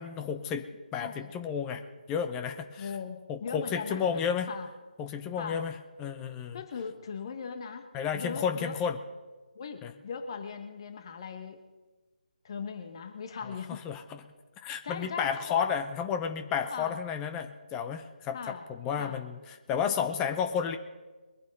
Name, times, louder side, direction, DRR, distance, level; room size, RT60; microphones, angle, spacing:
voice 1, 0.0-2.9 3.3-4.5 5.0-6.6 7.9-9.0 9.8-9.9 13.7-14.2 14.6-20.8, left 7 dB, 10° left, 7 dB, 0.7 m, -32 dB
voice 2, 1.0-1.3 2.8-4.0 4.5-4.7 5.4-5.6 6.5-7.9 8.1-8.8 9.5-11.6 12.4-13.8 14.8-15.7 16.7-17.0 18.3-18.7 19.0-19.2 19.8-20.1, left 6 dB, 35° left, 7 dB, 1.3 m, -39 dB
22.5 x 7.9 x 5.4 m, 1.2 s
figure-of-eight pair, 155°, 5 cm